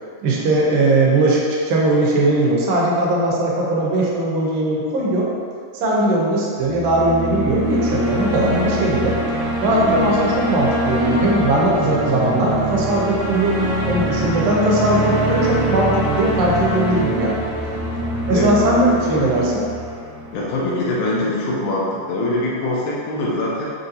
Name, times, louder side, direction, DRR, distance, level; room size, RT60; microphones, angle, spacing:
voice 1, 0.2-5.3 5.7-9.2 9.6-13.6 13.9-17.5 18.3-19.6, right 1 dB, 85° right, -4 dB, 2.5 m, -19 dB
sound 1, 6.6-20.8, right 1 dB, 70° right, 1.3 m, -24 dB
voice 2, 19.1-19.4 20.3-23.7, left 2 dB, 80° left, -5 dB, 1.8 m, -23 dB
6.2 x 2.6 x 2.7 m, 2.3 s
omnidirectional pair, 4.0 m